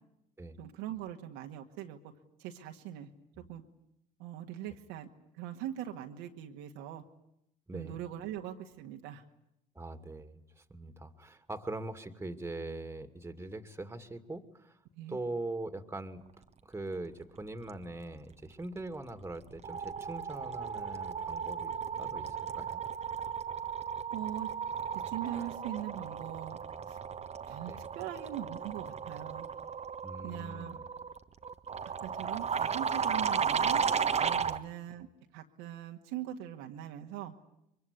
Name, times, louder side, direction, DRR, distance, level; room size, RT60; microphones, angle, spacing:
voice 1, 0.6-2.1 2.4-3.1 3.5-3.6 4.2-5.1 5.3-7.0 7.7-9.2 14.9-15.2 24.1-24.5 25.1-26.6 26.9-27.0 27.5-29.5 30.2-30.8 32.0-33.8 34.2-35.1 35.3-37.3, right 11 dB, 75° right, 3 dB, 2.0 m, -41 dB
voice 2, 7.7-8.0 9.7-14.8 15.1-16.2 16.6-21.7 22.0-22.3 22.5-22.9 27.7-27.9 30.0-30.8 34.4-34.6, right 2 dB, 10° right, 9 dB, 2.4 m, -42 dB
sound 1, 18.8-19.1 19.4-34.6, right 6 dB, 35° right, 1.3 m, -35 dB
24.0 x 23.0 x 9.9 m, 0.81 s
hypercardioid pair, 70°, 20 cm